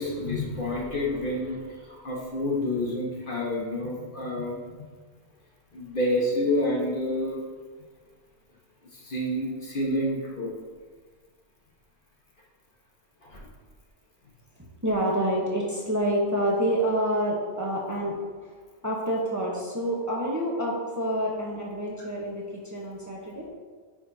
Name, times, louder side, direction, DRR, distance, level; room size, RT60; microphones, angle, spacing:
voice 1, 0.0-4.6 5.7-7.4 8.9-10.5 13.2-13.5, left 1 dB, 50° left, -3 dB, 1.5 m, -28 dB
voice 2, 14.8-18.2 18.4-18.5 18.8-23.5, right 1 dB, 15° right, -4 dB, 1.1 m, -27 dB
9.4 x 5.6 x 2.8 m, 1.5 s
omnidirectional pair, 1.1 m